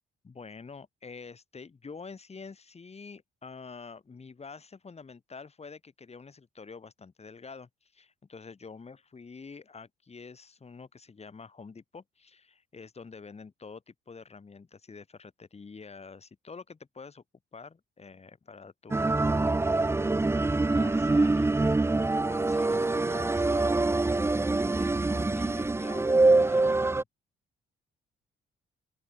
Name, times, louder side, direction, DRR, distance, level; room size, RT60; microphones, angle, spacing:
voice 1, 0.2-17.2 17.5-19.3 20.3-23.8 24.6-27.0, left 4 dB, 30° left, 4.9 m, -47 dB
sound 1, 18.9-27.0, right 2 dB, 15° right, 0.6 m, -25 dB
open air
cardioid pair, 90°, 20 cm